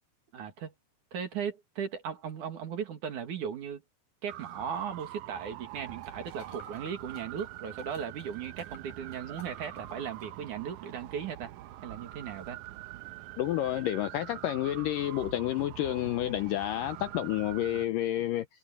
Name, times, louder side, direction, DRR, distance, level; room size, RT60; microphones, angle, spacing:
voice 1, 0.3-0.7 1.1-3.8 4.2-11.5 11.8-12.6, right 7 dB, 55° right, 3.2 m, -37 dB
sound 1, 4.3-17.9, right 14 dB, 80° right, 1.7 m, -45 dB
sound 2, 5.7-10.4 10.8-10.9, left 4 dB, 50° left, 6.4 m, -56 dB
voice 2, 13.4-18.5, left 13 dB, 80° left, 2.0 m, -30 dB
omnidirectional pair, 4.6 m